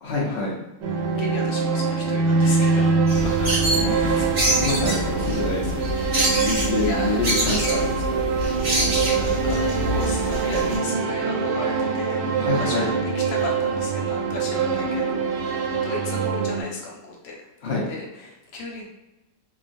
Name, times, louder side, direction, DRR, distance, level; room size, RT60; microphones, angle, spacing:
voice 1, 0.0-0.6 3.7-3.9 4.2-4.3 4.6-5.8 6.4-8.2 12.4-12.9 17.6-17.9, left 3 dB, 65° left, -4 dB, 0.6 m, -26 dB
sound 1, 0.8-16.6, right 5 dB, 90° right, 1.2 m, -24 dB
voice 2, 1.2-3.5 3.8-4.4 6.8-7.2 7.7-7.9 9.1-12.2 12.5-17.4 17.9-18.9, left 2 dB, 85° left, -1 dB, 1.3 m, -35 dB
sound 2, 3.1-10.8, equal, 45° right, 0.9 m, -26 dB
2.9 x 2.3 x 2.5 m, 1.0 s
omnidirectional pair, 1.9 m